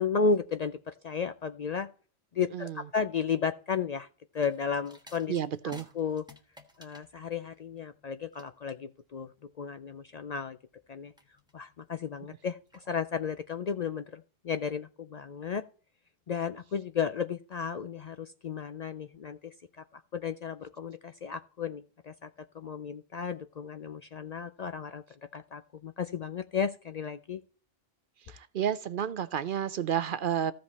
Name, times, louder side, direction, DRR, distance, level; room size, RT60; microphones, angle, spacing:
voice 1, 0.0-1.9 2.3-4.1 4.3-5.3 5.9-6.2 6.8-10.6 10.9-11.1 11.5-15.6 16.3-19.5 19.9-22.3 22.5-25.0 25.3-27.4, left 6 dB, 55° left, 0.5 m, -33 dB
sound 1, 4.3-13.4, left 2 dB, 5° right, 1.1 m, -56 dB
voice 2, 5.3-5.9 28.2-30.5, right 9 dB, 60° right, 0.7 m, -31 dB
15.0 x 5.2 x 4.1 m
omnidirectional pair, 1.1 m